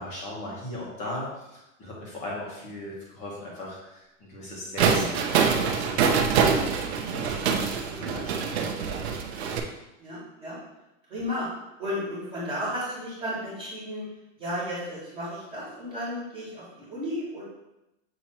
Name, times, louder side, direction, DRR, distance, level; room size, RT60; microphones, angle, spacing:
voice 1, 0.0-6.7 7.0-8.7, left 1 dB, 20° left, -4 dB, 1.3 m, -38 dB
sound 1, 4.8-9.6, right 6 dB, 55° right, 0.8 m, -25 dB
voice 2, 10.0-10.6 11.1-11.5 11.8-14.0 14.4-17.4, equal, ahead, -20 dB, 0.3 m, -33 dB
7.4 x 3.0 x 4.4 m, 0.90 s
supercardioid pair, 180°, 38 cm